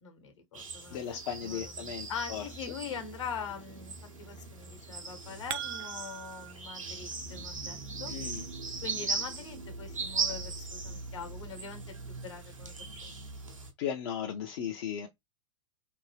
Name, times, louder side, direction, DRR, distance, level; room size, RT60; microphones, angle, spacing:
voice 1, 0.0-8.1 8.8-11.8 12.1-13.1, left 6 dB, 65° left, 1.0 m, -43 dB
sound 1, 0.5-13.7, right 4 dB, 85° right, 0.7 m, -39 dB
voice 2, 0.9-2.4 8.1-8.4 13.8-15.1, left 8 dB, 50° left, 0.5 m, -36 dB
sound 2, 5.0-6.5, right 12 dB, 50° right, 0.4 m, -39 dB
2.6 x 2.1 x 3.2 m
figure-of-eight pair, 95°, 16 cm